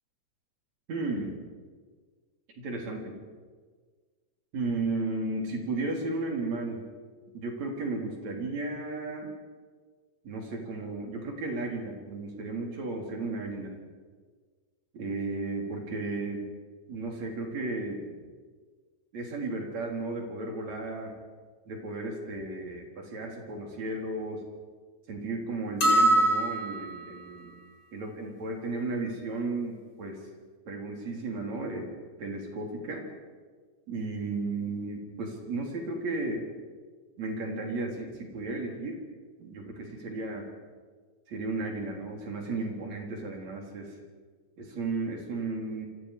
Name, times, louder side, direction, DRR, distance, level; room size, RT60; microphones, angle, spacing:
voice 1, 0.9-1.4 2.6-3.1 4.5-6.8 7.3-9.3 10.2-13.8 14.9-16.4 16.9-18.2 19.1-21.1 21.7-24.4 25.1-27.5 27.9-30.3 30.7-31.9 32.2-33.1 33.9-36.5 37.2-39.1 39.4-40.5 41.3-43.9 44.6-45.9, right 3 dB, 55° right, 1 dB, 4.9 m, -34 dB
sound 1, 25.8-27.1, right 1 dB, 25° left, 2.7 m, -23 dB
29.0 x 24.0 x 5.0 m, 1.5 s
omnidirectional pair, 3.8 m